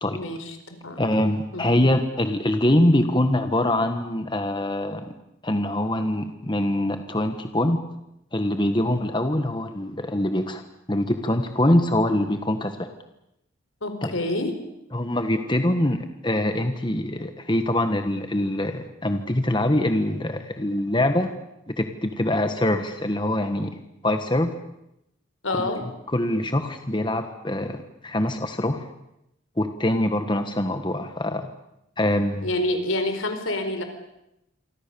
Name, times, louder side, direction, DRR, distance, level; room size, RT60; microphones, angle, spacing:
voice 1, 0.1-1.0 1.5-1.8 13.8-14.5 25.4-25.8 32.4-33.8, left 1 dB, 80° left, 7 dB, 4.7 m, -27 dB
voice 2, 1.0-5.0 5.4-7.8 8.3-10.6 10.9-12.9 14.0-14.1 14.9-21.3 21.8-23.8 24.0-24.5 25.6-25.7 26.1-28.8 29.6-31.5 32.0-32.5, left 1 dB, 20° left, 7 dB, 1.4 m, -24 dB
27.5 x 24.5 x 7.0 m, 0.84 s
head